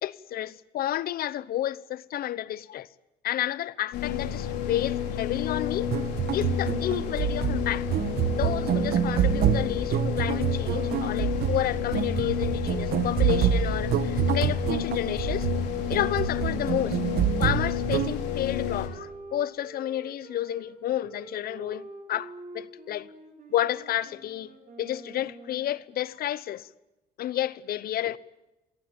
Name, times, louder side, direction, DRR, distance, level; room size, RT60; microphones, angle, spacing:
voice 1, 0.0-2.9 3.2-5.9 6.3-7.9 8.3-15.5 15.9-17.0 17.4-23.1 23.5-26.7 27.2-28.2, left 12 dB, 65° left, 1.1 m, -31 dB
sound 1, 3.9-18.9, left 9 dB, 85° left, 5.0 m, -31 dB
sound 2, 5.8-18.2, right 9 dB, 65° right, 1.8 m, -27 dB
Wind instrument woodwind instrument, 15.7-25.7, right 2 dB, 50° right, 7.2 m, -47 dB
27.5 x 18.0 x 9.0 m
cardioid pair, 110°, 17 cm